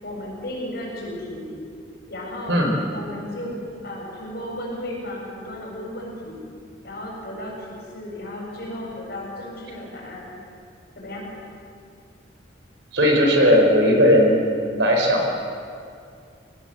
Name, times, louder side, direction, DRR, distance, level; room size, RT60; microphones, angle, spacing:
voice 1, 0.0-1.5 2.1-2.6 2.9-3.5 3.8-6.4 6.8-10.3 10.9-11.3, left 1 dB, 55° left, -3 dB, 7.6 m, -34 dB
voice 2, 12.9-14.4 14.7-15.4, equal, 70° right, 2 dB, 4.4 m, -17 dB
24.5 x 17.5 x 7.9 m, 2.3 s
head